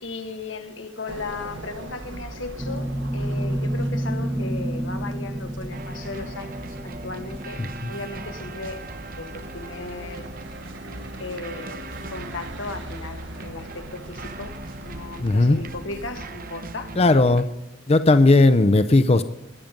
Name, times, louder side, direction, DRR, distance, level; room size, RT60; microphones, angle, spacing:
voice 1, 0.0-7.6 7.9-8.8 9.2-10.3 11.2-14.6 14.8-16.9, left 3 dB, 85° left, 1.6 m, -36 dB
sound 1, 1.1-16.3, right 1 dB, 70° right, 1.5 m, -41 dB
sound 2, 2.6-8.5, right 1 dB, 15° right, 0.7 m, -30 dB
sound 3, 5.7-17.4, right 2 dB, 50° right, 1.0 m, -39 dB
voice 2, 15.2-15.6 17.0-17.5 17.9-19.2, left 2 dB, 35° left, 0.6 m, -16 dB
21.0 x 7.5 x 5.2 m
head